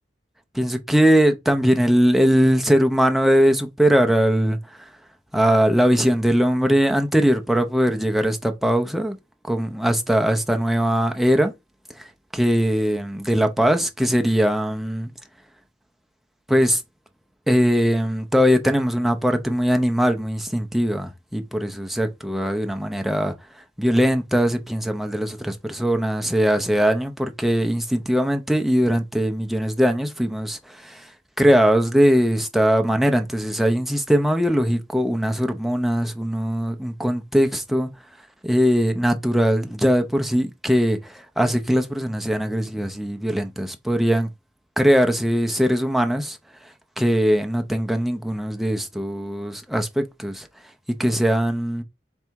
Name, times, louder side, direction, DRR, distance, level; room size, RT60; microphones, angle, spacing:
voice 1, 0.5-4.6 5.3-9.2 9.5-11.5 12.0-15.1 16.5-16.8 17.5-23.3 23.8-31.1 31.4-37.9 38.4-44.3 44.8-46.4 47.0-50.5 51.0-51.8, equal, ahead, 0.5 m, -20 dB
3.5 x 3.3 x 4.5 m
head